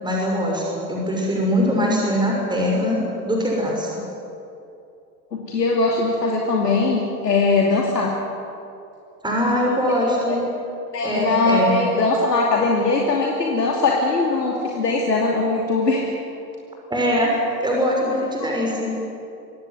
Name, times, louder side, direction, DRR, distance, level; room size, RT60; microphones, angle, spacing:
voice 1, 0.0-3.0 3.2-3.9 9.2-10.4 11.0-11.8 16.9-17.3 17.6-18.9, equal, 10° right, -2 dB, 6.3 m, -22 dB
voice 2, 5.3-8.1 10.2-10.4 10.9-16.1 18.4-18.5, left 3 dB, 80° left, -1 dB, 2.8 m, -20 dB
24.5 x 17.0 x 9.4 m, 2.7 s
figure-of-eight pair, 75°, 48 cm